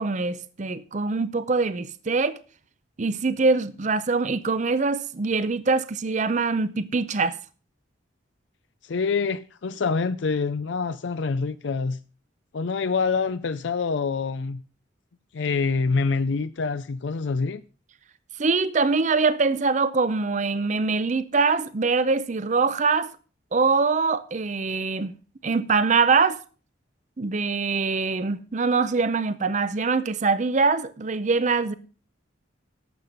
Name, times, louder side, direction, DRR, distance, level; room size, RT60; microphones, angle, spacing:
voice 1, 0.0-2.4 3.0-7.4 18.4-23.1 23.5-25.1 25.4-26.4 27.2-31.7, right 4 dB, 40° right, 0.6 m, -23 dB
voice 2, 8.8-12.0 12.5-14.6 15.3-17.6, left 4 dB, 70° left, 0.5 m, -26 dB
12.0 x 7.6 x 5.3 m
head